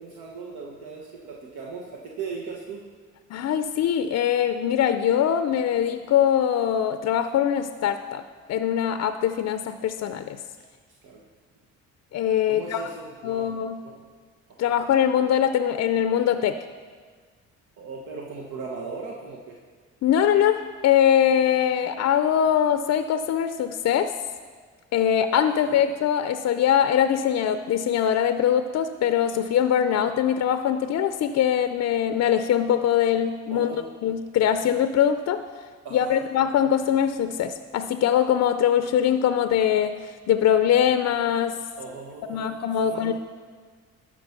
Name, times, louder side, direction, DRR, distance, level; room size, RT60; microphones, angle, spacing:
voice 1, 0.0-2.8 11.0-11.2 12.5-13.5 13.8-14.0 14.6-14.7 17.8-19.6 25.6-25.8 33.5-33.9 35.8-36.2 41.8-43.1, right 4 dB, 80° right, -2 dB, 1.1 m, -38 dB
voice 2, 3.3-8.2 8.5-10.4 12.1-12.8 13.2-13.8 14.6-16.6 20.0-24.1 24.9-33.8 34.0-35.4 35.9-41.6 42.3-43.1, left 9 dB, 60° left, 10 dB, 0.5 m, -22 dB
12.0 x 4.8 x 5.8 m, 1.5 s
cardioid pair, 90°, 30 cm